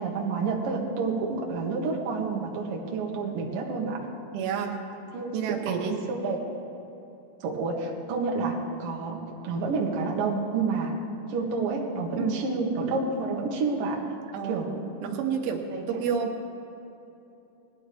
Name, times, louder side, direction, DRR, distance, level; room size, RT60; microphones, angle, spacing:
voice 1, 0.0-4.1 5.1-5.4 5.7-6.4 7.4-11.0 11.3-14.1 14.4-14.7 15.7-15.8, right 4 dB, 65° right, -1 dB, 2.5 m, -29 dB
voice 2, 4.3-4.8 5.3-6.0 12.2-12.4 14.3-16.4, right 6 dB, 85° right, 3 dB, 3.5 m, -30 dB
19.5 x 12.0 x 3.4 m, 2.9 s
omnidirectional pair, 5.4 m